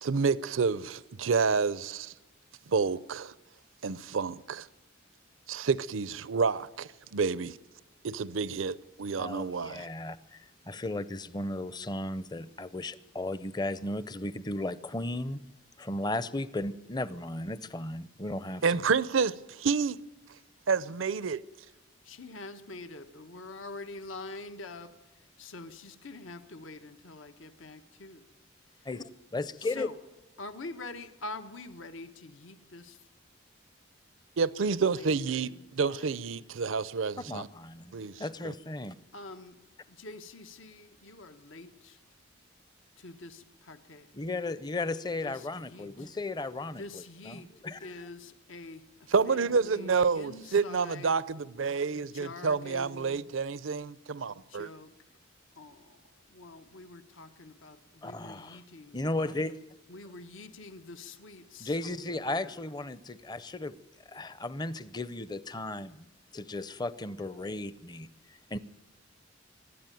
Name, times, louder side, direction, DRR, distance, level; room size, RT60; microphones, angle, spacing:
voice 1, 0.0-2.1 2.7-3.3 3.8-4.7 5.5-7.6 8.0-9.9 18.6-20.0 20.7-21.4 34.4-37.5 37.9-38.5 49.1-54.7, right 5 dB, 85° right, 0.6 m, -29 dB
voice 2, 9.2-15.4 15.8-18.8 28.9-29.9 37.3-38.9 44.1-46.8 47.2-47.9 58.0-58.6 58.9-59.6 61.6-63.8 64.1-66.0 66.3-68.6, left 2 dB, 20° left, 0.6 m, -35 dB
voice 3, 22.0-28.3 28.7-28.9 29.6-30.0 30.4-33.1 34.9-36.2 39.1-39.6 39.9-42.0 43.0-44.1 45.2-46.1 46.8-47.5 47.8-51.2 52.0-53.2 54.3-54.9 55.5-59.0 59.9-61.8 62.3-62.6, left 2 dB, 85° left, 1.3 m, -46 dB
24.0 x 12.5 x 9.2 m
head